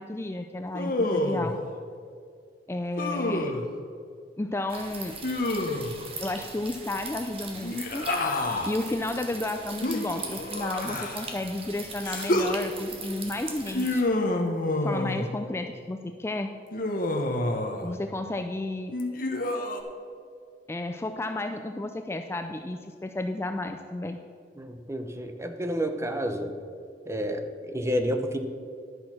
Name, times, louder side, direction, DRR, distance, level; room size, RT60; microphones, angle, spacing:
voice 1, 0.0-1.6 2.7-3.5 4.4-5.2 6.2-8.1 8.6-14.0 14.8-16.5 17.8-18.9 20.7-24.2, left 2 dB, 15° left, 6 dB, 0.4 m, -32 dB
Human voice, 0.7-1.6 3.0-3.7 5.2-6.0 7.6-8.7 9.8-11.3 12.0-12.6 13.7-15.3 16.7-17.9 18.9-19.8, left 2 dB, 55° left, 1.0 m, -28 dB
sound 1, 4.7-14.0, right 3 dB, 35° right, 1.4 m, -40 dB
voice 2, 24.6-26.5 27.1-28.4, equal, 15° right, 6 dB, 0.8 m, -30 dB
11.0 x 6.4 x 5.9 m, 2.3 s
head